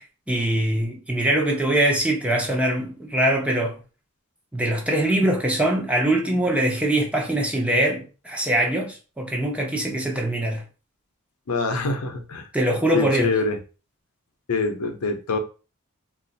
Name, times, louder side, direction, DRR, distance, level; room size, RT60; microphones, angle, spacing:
voice 1, 0.0-3.8 4.5-10.6 12.5-13.3, right 1 dB, 5° right, 0.6 m, -23 dB
voice 2, 11.5-12.5 12.9-13.6 14.5-15.4, left 3 dB, 75° left, 0.7 m, -25 dB
2.4 x 2.4 x 3.9 m
head